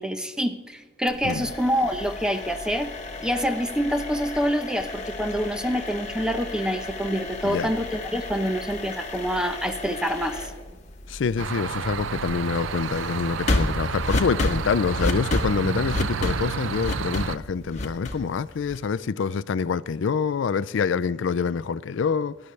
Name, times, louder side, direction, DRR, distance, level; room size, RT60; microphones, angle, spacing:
voice 1, 0.0-2.9 3.2-10.5, equal, 5° right, 0.7 m, -26 dB
sound 1, 1.1-19.0, left 2 dB, 40° left, 1.5 m, -32 dB
voice 2, 11.1-22.4, left 5 dB, 75° left, 0.4 m, -26 dB
sound 2, 11.4-17.4, right 6 dB, 85° right, 0.5 m, -31 dB
23.5 x 11.5 x 3.3 m
head